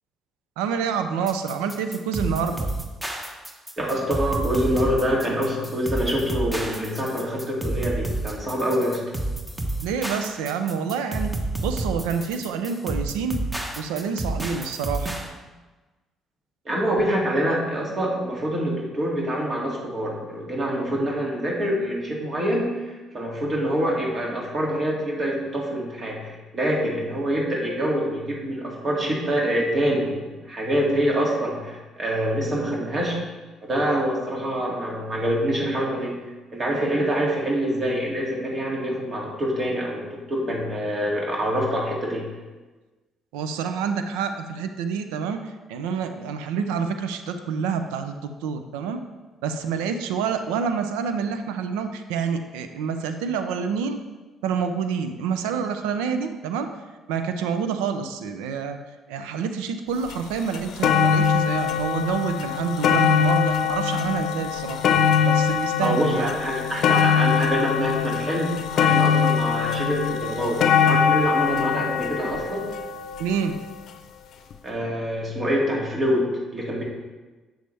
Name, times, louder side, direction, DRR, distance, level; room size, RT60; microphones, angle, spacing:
voice 1, 0.6-2.7 9.8-11.3 11.6-13.4 13.8-15.2 43.3-49.0 49.4-54.0 54.4-56.7 57.1-58.8 59.1-64.8 65.2-66.3 73.2-73.6, right 6 dB, 90° right, 8 dB, 0.5 m, -27 dB
sound 1, 1.3-15.3, right 2 dB, 10° right, 1.3 m, -30 dB
voice 2, 3.8-9.0 16.6-33.2 33.6-36.1 36.5-42.2 65.8-72.7 74.6-76.8, equal, 40° right, -3 dB, 2.3 m, -25 dB
sound 2, 60.1-60.2 60.5-73.7 74.5-74.6, left 7 dB, 65° left, 0.6 m, -22 dB
7.7 x 6.8 x 3.4 m, 1.2 s
supercardioid pair, 65°, 0 cm